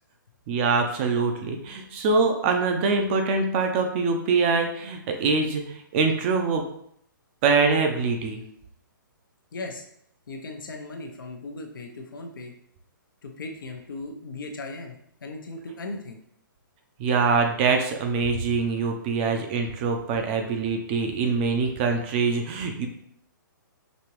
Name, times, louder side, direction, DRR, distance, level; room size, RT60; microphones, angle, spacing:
voice 1, 0.5-6.7 7.4-8.4 17.0-22.9, right 4 dB, 30° right, 4 dB, 0.6 m, -24 dB
voice 2, 9.5-9.8 10.3-12.5 13.2-14.9 15.2-16.2, left 2 dB, 70° left, 3 dB, 0.8 m, -37 dB
5.2 x 2.8 x 3.0 m, 0.69 s
hypercardioid pair, 140°, 11 cm